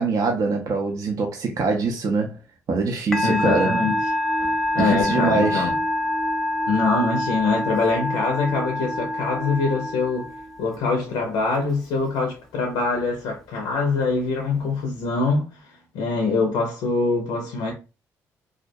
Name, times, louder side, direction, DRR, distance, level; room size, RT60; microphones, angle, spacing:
voice 1, 0.0-2.4 2.7-3.8 4.8-5.7, right 4 dB, 60° right, 0.5 m, -23 dB
Musical instrument, 3.1-10.7, left 1 dB, 5° left, 0.5 m, -26 dB
voice 2, 3.2-4.0 4.7-5.8 6.7-10.3 10.6-17.7, left 3 dB, 90° left, 0.5 m, -24 dB
2.3 x 2.1 x 2.6 m
cardioid pair, 70°, 7 cm